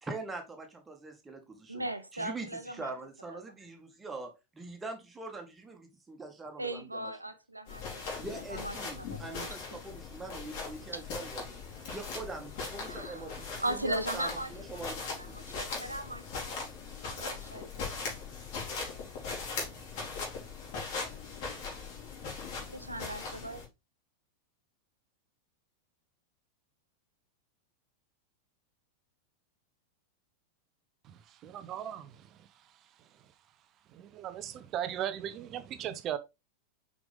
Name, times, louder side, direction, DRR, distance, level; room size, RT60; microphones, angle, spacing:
voice 1, 0.0-1.9 2.1-7.1 8.2-11.6 11.9-15.6, right 3 dB, 15° right, 1.9 m, -43 dB
voice 2, 1.7-2.9 3.3-3.6 6.6-8.2 8.5-9.6 10.9-11.0 12.8-16.3 16.6-16.7 17.1-17.9 22.7-23.6, right 1 dB, 85° right, 0.9 m, -38 dB
sound 1, 7.7-23.7, left 4 dB, 50° left, 3.2 m, -40 dB
voice 3, 31.0-32.5 33.9-36.2, right 10 dB, 35° right, 0.8 m, -38 dB
5.9 x 5.2 x 3.6 m
figure-of-eight pair, 90°, 0 cm